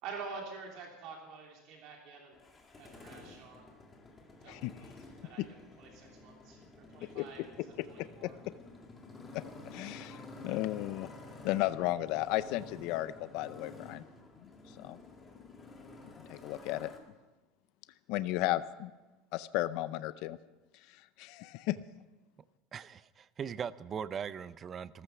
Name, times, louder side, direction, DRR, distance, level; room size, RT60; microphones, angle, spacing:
voice 1, 0.0-2.4 2.7-3.7 4.4-4.9 5.2-5.4 5.8-7.4 7.9-8.4, right 5 dB, 50° right, 0 dB, 3.0 m, -47 dB
Motorcycle, 2.3-17.0, left 2 dB, 15° left, 2.1 m, -51 dB
voice 2, 8.0-8.3 9.3-9.4 9.7-11.1 11.4-14.0 14.8-15.0 16.3-16.9 18.1-18.9 19.3-20.4 20.7-21.8, left 16 dB, 60° left, 14 dB, 0.5 m, -34 dB
voice 3, 22.7-25.0, right 7 dB, 25° right, 17 dB, 0.5 m, -40 dB
14.5 x 14.0 x 5.9 m, 1.2 s
cardioid pair, 155°, 0 cm